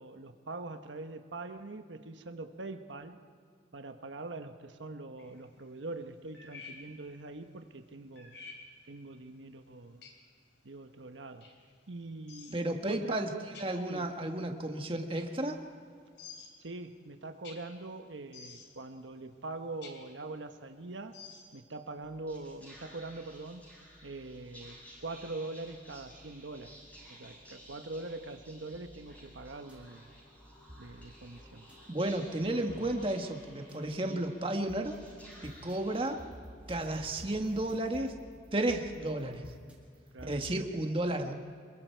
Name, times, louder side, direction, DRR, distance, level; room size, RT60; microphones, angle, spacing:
voice 1, 0.0-3.2 3.7-8.3 8.8-10.0 10.6-11.5 11.9-13.5 13.9-14.1 16.6-21.2 21.5-23.7 24.0-26.8 27.1-30.1 30.8-31.7 32.5-32.9 34.1-34.3 40.1-40.4, right 2 dB, 90° right, 7 dB, 1.1 m, -43 dB
sound 1, 5.2-21.5, left 4 dB, 80° left, 3.3 m, -52 dB
voice 2, 12.5-13.3 13.6-15.6 31.9-35.0 35.4-36.2 36.7-38.2 38.5-39.4 40.2-41.3, right 1 dB, 30° right, 4 dB, 1.4 m, -33 dB
Whispering, 21.9-38.5, equal, 10° left, 6.7 m, -54 dB
sound 2, 28.7-29.8 30.7-31.8 32.7-33.8 34.7-40.6, equal, 5° right, 3.8 m, -52 dB
26.5 x 22.5 x 4.6 m, 2.3 s
head